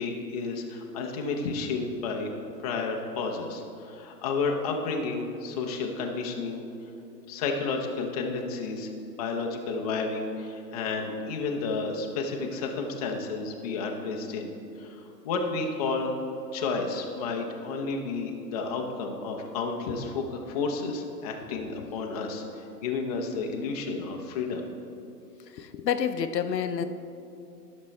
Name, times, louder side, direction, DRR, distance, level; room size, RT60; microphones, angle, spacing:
voice 1, 0.0-2.3 2.6-6.6 7.3-8.9 9.2-14.5 14.8-16.1 16.5-24.6, left 4 dB, 25° left, 2 dB, 0.5 m, -31 dB
voice 2, 25.6-26.8, left 8 dB, 80° left, 9 dB, 0.7 m, -29 dB
12.5 x 6.1 x 3.2 m, 2.7 s
hypercardioid pair, 130°, 50 cm